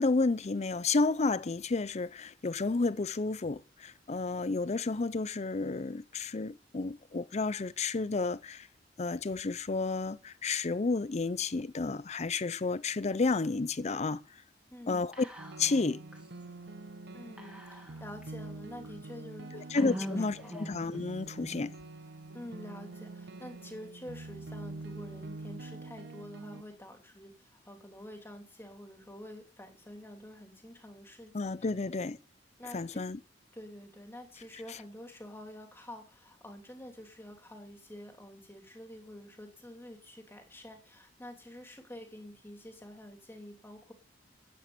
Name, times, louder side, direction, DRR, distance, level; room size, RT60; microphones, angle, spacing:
voice 1, 0.0-8.7 9.0-14.2 14.9-15.3 15.6-16.0 19.5-21.7 31.3-32.2 32.7-33.2, left 3 dB, 40° left, 0.5 m, -31 dB
voice 2, 14.7-15.0 17.1-20.6 22.3-27.3 27.6-31.3 32.6-33.0 33.5-43.9, left 1 dB, 15° left, 2.7 m, -48 dB
Whispering, 15.1-15.8 16.1-16.2 17.4-18.2 18.8-18.9 19.7-21.0, equal, 5° right, 2.3 m, -41 dB
sound 1, 15.4-26.6, right 2 dB, 65° right, 1.0 m, -46 dB
11.5 x 8.7 x 6.8 m
head